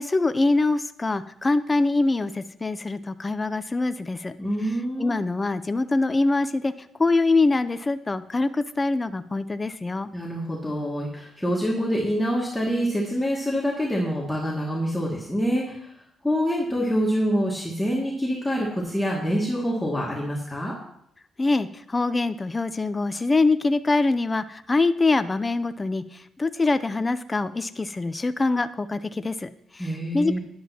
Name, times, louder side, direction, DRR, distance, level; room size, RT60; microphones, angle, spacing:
voice 1, 0.0-4.4 5.0-6.7 7.0-10.1 21.4-30.4, left 3 dB, 25° left, 12 dB, 0.5 m, -24 dB
voice 2, 4.4-5.2 10.1-15.9 16.2-20.8 29.8-30.4, equal, 5° left, -4 dB, 2.2 m, -26 dB
12.5 x 10.5 x 2.9 m, 0.75 s
cardioid pair, 90°, 0 cm